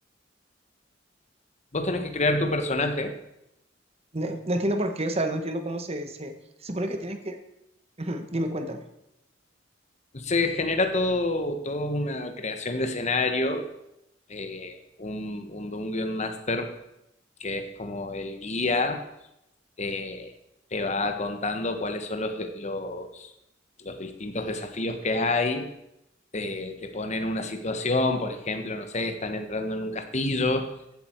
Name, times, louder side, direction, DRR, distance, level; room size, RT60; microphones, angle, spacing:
voice 1, 1.7-3.1 10.1-13.7 14.3-16.7 17.4-19.0 19.8-20.3 20.7-23.3 23.8-25.7 26.3-30.7, left 2 dB, 40° left, 7 dB, 1.2 m, -28 dB
voice 2, 4.1-6.3 6.6-7.4 8.0-8.8, right 1 dB, 35° right, 6 dB, 1.2 m, -29 dB
14.5 x 7.8 x 4.5 m, 0.85 s
head